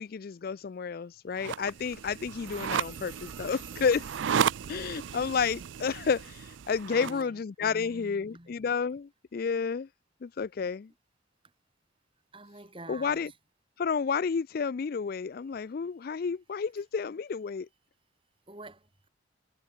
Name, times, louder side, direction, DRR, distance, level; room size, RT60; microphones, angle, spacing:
voice 1, 0.0-4.1 4.7-9.9 10.2-10.9 12.9-13.3 13.8-17.7, left 5 dB, 50° left, 0.4 m, -31 dB
sound 1, 1.4-7.2, right 8 dB, 75° right, 0.4 m, -34 dB
Telephone, 2.4-5.2, right 3 dB, 10° right, 2.0 m, -53 dB
voice 2, 6.9-8.5 12.3-13.4 18.5-19.1, right 2 dB, 25° right, 4.5 m, -47 dB
head